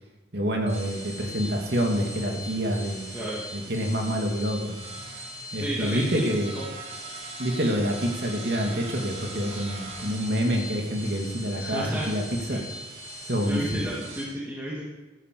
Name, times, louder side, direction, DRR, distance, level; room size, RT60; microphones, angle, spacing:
voice 1, 0.3-3.1 3.5-4.8 5.5-6.5 7.4-12.2 12.5-12.6 13.3-13.9, equal, 65° right, 1 dB, 2.6 m, -27 dB
sound 1, 0.5-14.2, right 1 dB, 35° right, 2.5 m, -40 dB
voice 2, 3.1-3.4 5.5-6.7 11.6-12.6 13.4-14.8, right 1 dB, 10° right, -7 dB, 2.6 m, -33 dB
12.5 x 10.0 x 7.0 m, 1.1 s
head